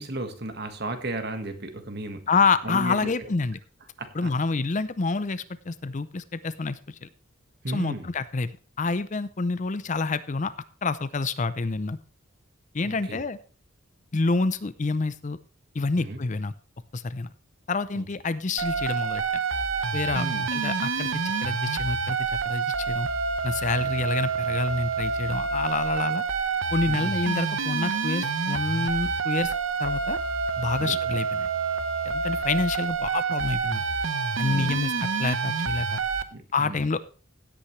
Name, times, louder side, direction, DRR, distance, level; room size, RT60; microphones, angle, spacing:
voice 1, 0.0-2.3 2.6-3.3 4.0-4.3 7.6-8.1 12.8-13.2 16.0-16.2 17.9-18.0 20.1-20.5 23.7-23.9 26.9-27.1 30.8-31.0 34.5-34.9 36.3-36.8, right 2 dB, 50° right, 8 dB, 1.5 m, -35 dB
voice 2, 2.3-3.6 4.1-7.1 7.7-8.5 8.8-10.5 10.8-12.0 12.7-13.4 14.1-15.4 15.7-16.5 16.9-17.3 17.7-19.2 19.9-20.2 20.5-22.2 22.4-23.1 23.4-26.2 26.7-29.5 29.8-30.2 30.6-31.5 32.1-33.8 34.4-34.9 35.2-36.0 36.5-37.0, left 3 dB, 35° left, 15 dB, 0.5 m, -27 dB
sound 1, 18.6-36.2, right 5 dB, 70° right, 0.9 m, -28 dB
16.5 x 8.7 x 3.2 m, 0.36 s
head